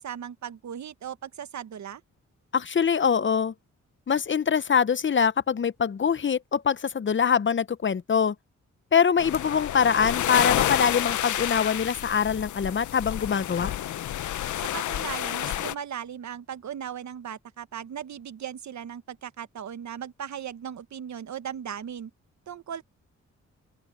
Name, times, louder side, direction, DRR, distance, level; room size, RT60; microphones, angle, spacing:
voice 1, 0.0-2.0 14.6-22.1 22.5-22.8, right 9 dB, 70° right, 1.3 m, -37 dB
voice 2, 2.5-3.5 4.1-8.3 8.9-13.7, left 7 dB, 40° left, 0.8 m, -24 dB
sound 1, 9.2-15.7, left 12 dB, 80° left, 0.8 m, -29 dB
open air
cardioid pair, 65°, 29 cm